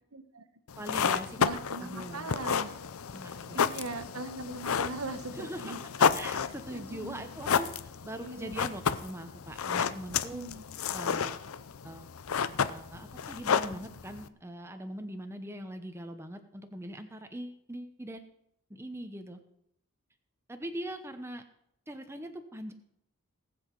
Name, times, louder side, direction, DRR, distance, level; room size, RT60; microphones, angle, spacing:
voice 1, 0.1-0.4 1.4-2.7 3.5-6.2 6.7-7.3 8.2-8.6 10.3-10.6, right 3 dB, 80° right, 9 dB, 1.1 m, -40 dB
sound 1, 0.7-14.3, left 6 dB, 75° left, 0.6 m, -31 dB
voice 2, 0.8-1.5 1.8-2.3 3.1-3.6 5.3-5.8 6.1-7.7 8.0-10.4 10.9-11.4 11.8-12.1 12.7-18.2 18.7-19.4 20.5-21.4 21.9-22.7, right 1 dB, 10° right, 6 dB, 0.8 m, -41 dB
19.0 x 7.9 x 4.6 m, 0.75 s
head